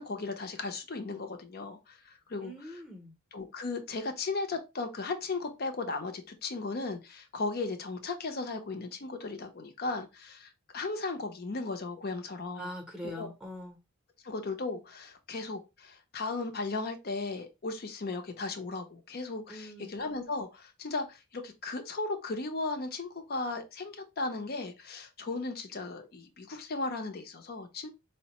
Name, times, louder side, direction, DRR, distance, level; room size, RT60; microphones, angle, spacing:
voice 1, 0.0-2.5 3.3-12.7 13.2-13.3 14.2-27.9, left 3 dB, 50° left, 0.6 m, -36 dB
voice 2, 2.4-3.1 12.6-13.8 19.5-19.9, equal, 5° right, 0.7 m, -42 dB
4.5 x 2.1 x 2.8 m
head